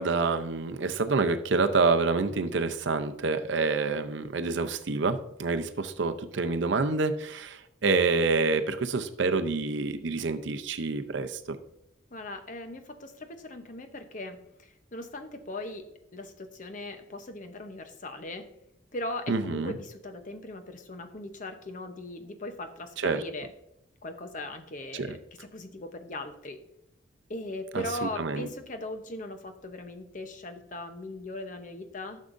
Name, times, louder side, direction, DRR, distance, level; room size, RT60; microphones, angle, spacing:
voice 1, 0.0-11.6 19.3-19.7 23.0-23.2 24.9-25.2 27.7-28.5, right 4 dB, 65° right, 8 dB, 0.6 m, -27 dB
voice 2, 12.1-15.9 16.1-18.5 18.9-23.5 24.0-26.6 27.3-32.2, left 2 dB, 40° left, 7 dB, 0.8 m, -39 dB
12.0 x 6.4 x 2.6 m, 0.80 s
head